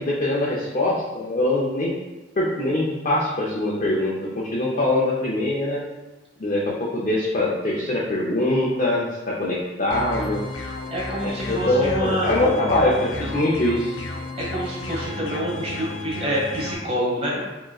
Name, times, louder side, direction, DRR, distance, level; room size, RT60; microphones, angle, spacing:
voice 1, 0.0-1.9 2.4-5.8 6.4-10.4 11.2-13.9, left 1 dB, 40° left, -5 dB, 0.6 m, -23 dB
sound 1, 9.9-16.7, left 2 dB, 85° left, 0.6 m, -32 dB
voice 2, 10.9-12.5 14.4-17.5, equal, 35° right, -4 dB, 1.1 m, -27 dB
4.8 x 3.0 x 2.3 m, 1.1 s
head